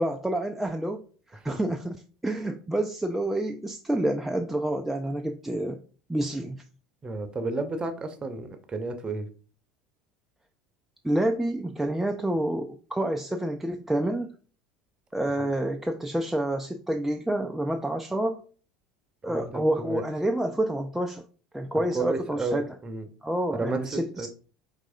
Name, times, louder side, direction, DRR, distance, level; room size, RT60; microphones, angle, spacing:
voice 1, 0.0-1.9 2.2-5.8 6.1-6.6 11.0-14.3 15.1-18.4 19.2-21.2 21.5-22.7 23.2-24.3, right 1 dB, 5° right, 4 dB, 0.4 m, -28 dB
voice 2, 7.0-9.3 15.4-15.5 19.3-20.0 21.7-23.1 23.5-23.8 24.2-24.3, right 3 dB, 25° right, 8 dB, 0.7 m, -32 dB
4.6 x 3.2 x 2.6 m, 0.40 s
figure-of-eight pair, 70°, 4 cm